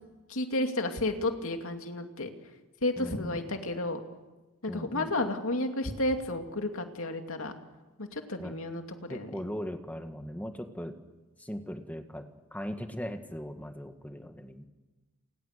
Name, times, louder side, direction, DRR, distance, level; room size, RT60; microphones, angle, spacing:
voice 1, 0.3-2.3 2.8-4.0 4.6-7.5 8.0-8.8 9.1-9.3, left 2 dB, 65° left, 5 dB, 2.7 m, -31 dB
voice 2, 3.0-3.4 4.7-5.1 8.4-8.6 9.1-11.0 11.4-14.6, equal, 5° left, 6 dB, 1.8 m, -39 dB
29.5 x 28.5 x 6.8 m, 1.2 s
head